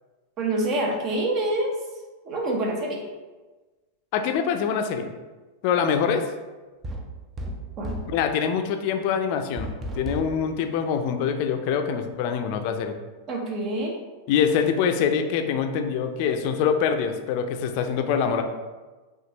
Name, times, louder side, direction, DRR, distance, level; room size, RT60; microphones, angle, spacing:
voice 1, 0.4-1.7 2.3-3.0 7.8-7.9 13.3-14.0, right 1 dB, 40° right, 1 dB, 1.0 m, -26 dB
voice 2, 4.1-5.1 5.6-6.3 8.1-12.9 14.3-18.4, left 7 dB, 50° left, 7 dB, 0.5 m, -24 dB
sound 1, 6.8-8.2 9.6-10.4, right 1 dB, 25° right, 0.6 m, -33 dB
5.8 x 2.5 x 2.9 m, 1.2 s
figure-of-eight pair, 95°, 0 cm